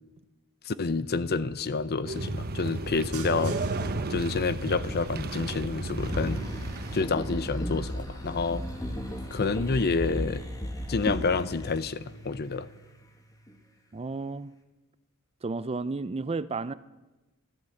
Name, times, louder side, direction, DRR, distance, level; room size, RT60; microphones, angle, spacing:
voice 1, 0.6-3.6 4.1-6.4 6.9-8.6 9.3-10.4 10.9-12.7, left 4 dB, 45° left, 0.7 m, -28 dB
sound 1, 2.0-7.0, right 2 dB, 45° right, 0.9 m, -33 dB
sound 2, 2.9-9.9, right 2 dB, 90° right, 2.1 m, -46 dB
sound 3, 6.0-12.9 13.5-13.6, equal, 15° left, 1.7 m, -35 dB
voice 2, 13.9-14.5 15.4-16.7, right 3 dB, 25° right, 0.5 m, -32 dB
13.5 x 13.0 x 7.9 m
head